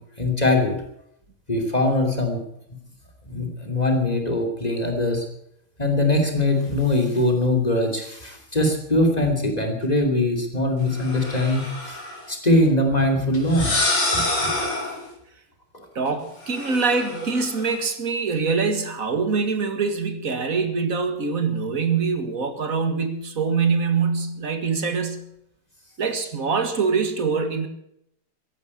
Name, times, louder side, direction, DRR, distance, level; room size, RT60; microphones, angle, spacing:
voice 1, 0.2-0.8 1.5-2.4 3.3-5.2 5.8-12.0 12.3-13.8 14.1-14.5 15.7-15.8, left 1 dB, 20° left, 3 dB, 2.9 m, -22 dB
sound 1, 10.9-12.2 13.3-15.1 16.4-17.8, left 2 dB, 60° left, 4.6 m, -27 dB
voice 2, 16.0-25.3 26.0-27.7, right 5 dB, 40° right, 8 dB, 2.1 m, -24 dB
15.0 x 11.0 x 8.4 m, 0.76 s
omnidirectional pair, 2.3 m